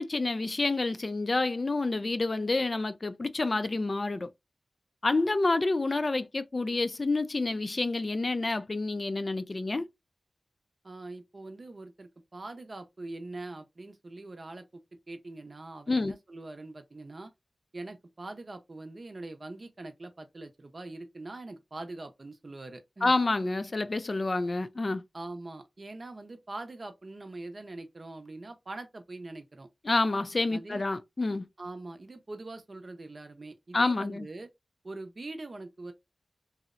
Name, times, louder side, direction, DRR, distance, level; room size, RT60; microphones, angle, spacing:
voice 1, 0.0-4.3 5.0-9.9 15.9-16.1 23.0-25.0 29.9-31.4 33.7-34.3, left 3 dB, 50° left, 0.3 m, -28 dB
voice 2, 10.8-17.3 17.7-23.1 25.1-29.7 30.5-30.8 31.6-34.5 34.8-35.9, right 2 dB, 55° right, 0.5 m, -43 dB
2.7 x 2.0 x 2.4 m
cardioid pair, 40°, 0 cm